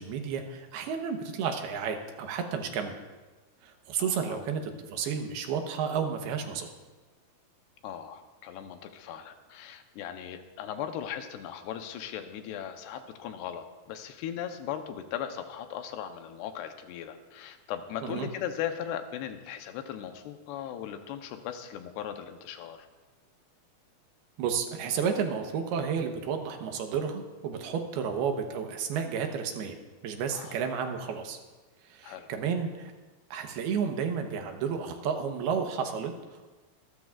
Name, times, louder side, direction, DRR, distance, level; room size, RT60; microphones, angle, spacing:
voice 1, 0.0-3.0 3.6-6.7 18.0-18.3 24.4-29.8 30.0-31.4 31.9-32.9 33.3-36.6, right 6 dB, 75° right, 4 dB, 3.0 m, -32 dB
voice 2, 4.0-4.4 7.8-22.9 30.3-30.6 32.0-32.3, left 9 dB, 85° left, 7 dB, 2.9 m, -38 dB
25.0 x 13.5 x 2.5 m, 1.3 s
omnidirectional pair, 4.7 m